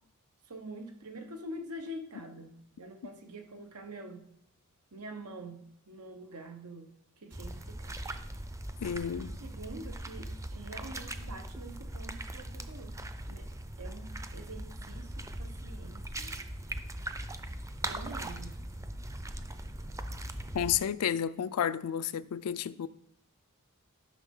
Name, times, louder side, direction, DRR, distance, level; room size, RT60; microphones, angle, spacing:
voice 1, 0.4-4.3 4.9-8.0 9.2-13.0 13.3-13.5 13.8-16.3 17.8-18.6, right 1 dB, 85° right, 1.2 m, -46 dB
sound 1, 7.3-20.8, right 1 dB, 15° right, 0.5 m, -40 dB
voice 2, 8.8-9.4 20.5-22.9, left 9 dB, 80° left, 0.4 m, -31 dB
12.5 x 6.2 x 3.7 m
head